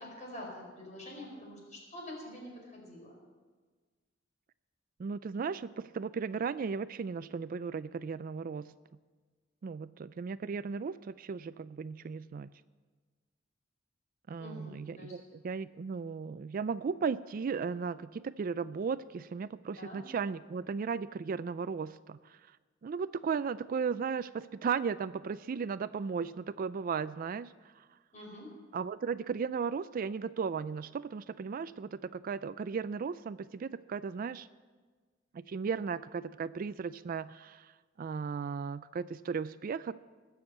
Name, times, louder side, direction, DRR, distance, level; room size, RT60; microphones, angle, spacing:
voice 1, 0.0-3.2 14.4-15.2 19.8-20.0 28.1-28.5, left 1 dB, 40° left, -1 dB, 5.0 m, -46 dB
voice 2, 5.0-8.7 9.6-12.5 14.3-22.4 22.8-27.8 28.7-34.5 35.3-37.7 38.0-39.9, right 5 dB, 45° right, 16 dB, 0.3 m, -36 dB
19.5 x 7.1 x 7.8 m, 1.4 s
head